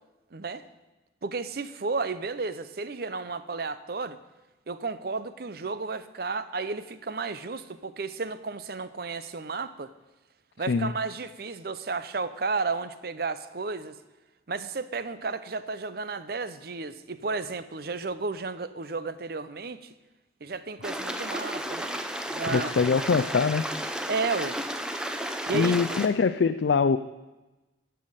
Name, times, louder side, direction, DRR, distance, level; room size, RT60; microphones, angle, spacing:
voice 1, 0.3-0.6 1.2-4.2 4.7-9.9 10.6-14.0 14.5-19.9 20.4-21.9 22.3-22.7 24.1-24.6 25.5-25.8, right 4 dB, 55° right, 13 dB, 0.6 m, -33 dB
Stream, 20.8-26.1, equal, 5° right, 0.7 m, -33 dB
voice 2, 22.5-23.7 25.5-27.0, left 5 dB, 70° left, 9 dB, 0.4 m, -23 dB
14.0 x 5.7 x 8.9 m, 1.1 s
head